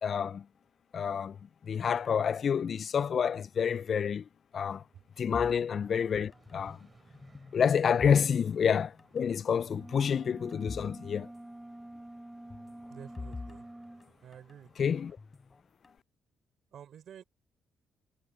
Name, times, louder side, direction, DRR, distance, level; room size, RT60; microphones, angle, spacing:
voice 1, 0.0-0.4 0.9-1.4 1.7-4.2 4.5-4.8 5.2-6.8 7.5-11.3 14.8-15.1, left 7 dB, 50° left, 0.4 m, -28 dB
sound 1, 5.0-15.2, right 3 dB, 30° right, 6.4 m, -63 dB
sound 2, 5.3-6.9 7.1-8.7 9.0-9.2 9.8-11.0 11.2-11.3 12.5-14.6 15.2-16.0, left 3 dB, 25° left, 4.0 m, -46 dB
sound 3, 9.6-14.1, right 1 dB, 10° right, 1.1 m, -47 dB
voice 2, 12.9-13.7 14.2-15.0 16.7-17.2, right 9 dB, 65° right, 4.5 m, -50 dB
cardioid pair, 90°, 0 cm